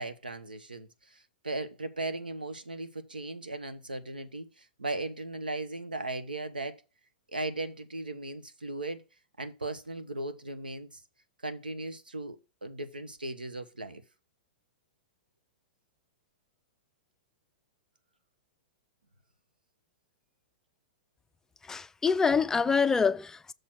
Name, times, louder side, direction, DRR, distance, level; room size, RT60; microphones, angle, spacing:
voice 1, 0.0-6.8 7.3-9.0 9.4-11.0 11.4-14.0, right 2 dB, 90° right, 1.0 m, -37 dB
voice 2, 21.7-23.5, left 5 dB, 10° left, 0.4 m, -26 dB
6.7 x 4.2 x 5.9 m
figure-of-eight pair, 110°, 5 cm